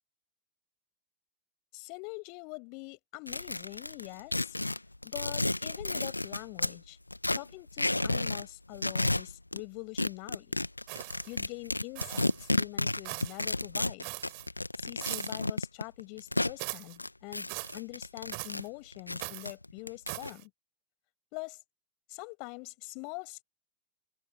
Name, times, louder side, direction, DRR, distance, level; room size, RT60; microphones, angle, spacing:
voice 1, 1.7-4.6 5.0-7.0 7.3-10.6 11.3-14.1 14.8-17.5 17.7-20.5 21.3-21.6 22.1-23.4, left 36 dB, 45° left, 7.8 m, -44 dB
sound 1, 3.3-6.8 7.1-8.5 8.7-9.6 10.0-16.6 17.0-18.6 18.9-20.3, left 2 dB, 85° left, 1.4 m, -31 dB
sound 2, 10.9-11.4 11.9-12.5 13.0-13.5 14.0-14.5 15.0-15.5 16.6-17.0 17.5-17.8 18.3-18.7 19.2-19.5 20.1-20.4, right 31 dB, 45° right, 4.7 m, -40 dB
open air
figure-of-eight pair, 90°, 0 cm